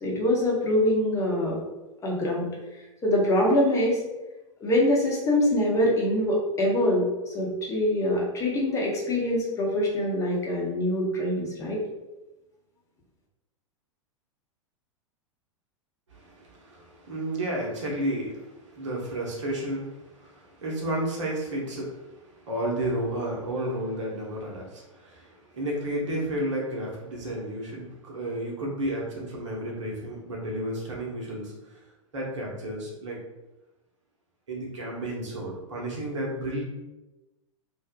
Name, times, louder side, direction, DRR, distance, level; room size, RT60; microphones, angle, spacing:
voice 1, 0.0-1.6 2.0-2.5 3.0-4.0 4.6-7.1 7.3-11.8, left 1 dB, 15° left, -3 dB, 0.7 m, -24 dB
voice 2, 16.1-31.8 32.1-33.2 34.5-36.6, right 1 dB, 65° right, -2 dB, 0.8 m, -32 dB
2.7 x 2.0 x 2.4 m, 1.0 s
figure-of-eight pair, 95°, 17 cm